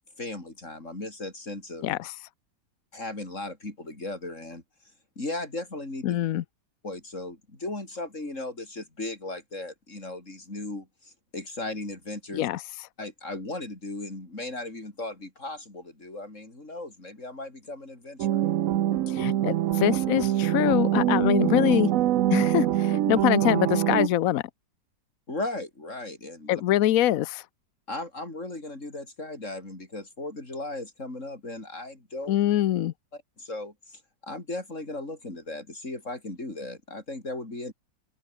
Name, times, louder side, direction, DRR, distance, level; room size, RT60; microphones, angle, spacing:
voice 1, 0.2-2.0 2.9-4.6 5.2-6.2 6.8-12.4 13.0-18.4 25.3-26.5 27.9-32.4 33.1-37.7, left 2 dB, 40° left, 5.9 m, -37 dB
voice 2, 1.8-2.2 6.0-6.4 12.3-12.9 19.1-21.9 22.3-24.4 26.5-27.5 32.3-32.9, left 13 dB, 65° left, 0.9 m, -24 dB
sound 1, 18.2-24.1, right 12 dB, 65° right, 0.9 m, -24 dB
open air
omnidirectional pair, 2.0 m